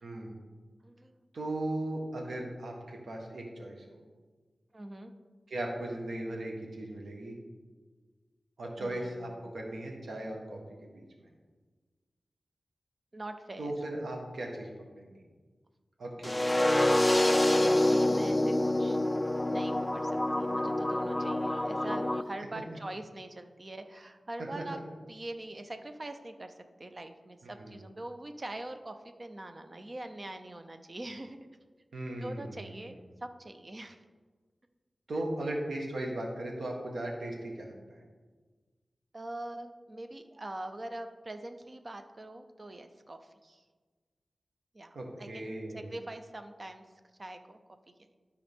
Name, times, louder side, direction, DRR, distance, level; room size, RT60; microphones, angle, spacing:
voice 1, 0.0-0.4 1.3-4.0 5.5-7.4 8.6-11.3 13.6-14.7 14.9-15.2 16.0-16.4 24.5-24.6 27.4-27.8 31.9-32.9 35.1-38.0 44.9-45.9, right 1 dB, 90° right, 0 dB, 1.4 m, -37 dB
voice 2, 0.8-1.2 4.7-5.1 8.8-9.3 13.1-13.7 17.6-19.0 19.5-24.8 25.1-31.4 32.2-34.0 39.1-43.6 44.7-46.8 47.2-47.6, right 1 dB, 35° right, 7 dB, 0.6 m, -43 dB
sound 1, 16.2-22.2, left 1 dB, 15° left, 0.3 m, -27 dB
12.0 x 5.0 x 3.6 m, 1.4 s
wide cardioid pair, 110°, 0 cm